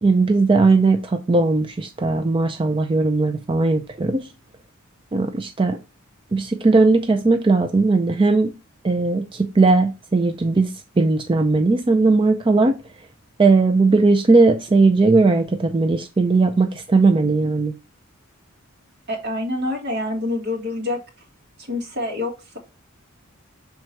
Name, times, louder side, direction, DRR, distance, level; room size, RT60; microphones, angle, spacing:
voice 1, 0.0-4.2 5.1-5.8 6.3-8.5 8.8-10.7 11.0-12.8 13.4-17.7, right 3 dB, 25° right, 0.4 m, -18 dB
voice 2, 19.1-21.0 21.6-22.6, left 2 dB, 50° right, 2.0 m, -26 dB
6.5 x 3.6 x 4.4 m
head